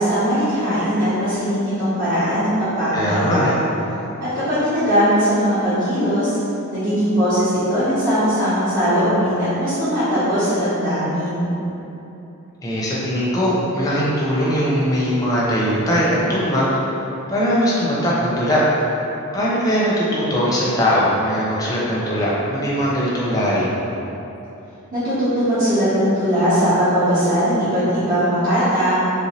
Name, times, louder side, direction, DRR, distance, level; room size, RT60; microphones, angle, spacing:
voice 1, 0.0-3.6 4.2-6.3 6.7-11.5 24.9-28.9, equal, 50° right, -16 dB, 1.1 m, -19 dB
voice 2, 2.9-3.5 12.6-16.7 17.3-18.6 19.3-23.7, equal, 15° left, -7 dB, 0.5 m, -20 dB
3.3 x 2.7 x 2.9 m, 3.0 s
head